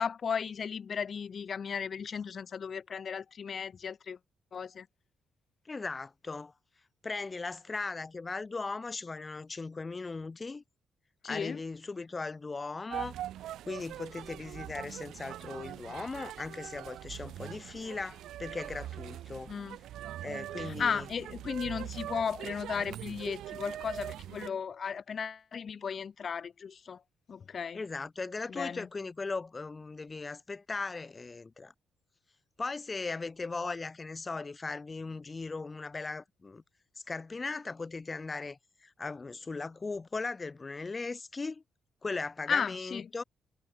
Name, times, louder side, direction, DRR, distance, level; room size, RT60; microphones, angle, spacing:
voice 1, 0.0-4.2 4.5-4.9 11.2-11.6 19.5-19.8 20.6-27.0 27.3-27.8 28.5-28.9 42.5-43.1, left 6 dB, 45° left, 0.4 m, -35 dB
voice 2, 5.7-6.5 7.0-10.6 11.3-13.2 13.7-19.5 20.2-21.1 27.7-31.7 32.6-36.6 37.1-41.6 42.0-43.2, left 3 dB, 25° left, 0.9 m, -38 dB
sound 1, 12.9-24.5, right 12 dB, 80° right, 0.6 m, -42 dB
cardioid pair, 90°, 0 cm